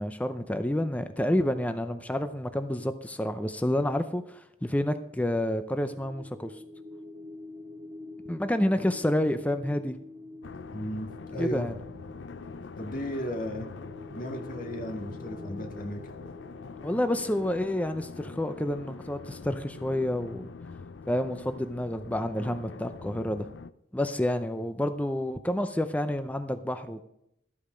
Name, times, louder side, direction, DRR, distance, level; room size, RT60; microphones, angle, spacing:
voice 1, 0.0-6.5 8.3-10.0 11.4-11.7 16.8-20.5 21.1-23.5 23.9-27.0, left 1 dB, 10° left, 9 dB, 0.5 m, -29 dB
sound 1, 5.4-19.8, left 2 dB, 30° right, 0.9 m, -48 dB
sound 2, 10.4-23.7, left 4 dB, 80° left, 0.5 m, -44 dB
voice 2, 10.7-11.7 12.8-13.7 14.1-16.0, equal, 50° left, 3 dB, 1.8 m, -35 dB
13.0 x 8.5 x 5.1 m, 0.78 s
head